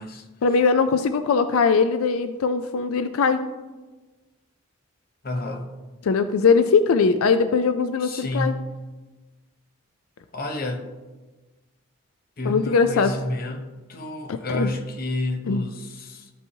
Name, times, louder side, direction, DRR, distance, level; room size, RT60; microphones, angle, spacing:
voice 1, 0.4-3.4 6.0-8.5 12.4-13.1 14.5-14.7 15.5-15.6, left 5 dB, 85° left, 10 dB, 0.4 m, -20 dB
voice 2, 5.2-5.7 8.0-8.7 10.3-10.8 12.4-13.6 13.9-16.3, left 1 dB, 45° left, 4 dB, 0.8 m, -30 dB
13.0 x 5.5 x 2.8 m, 1.2 s
head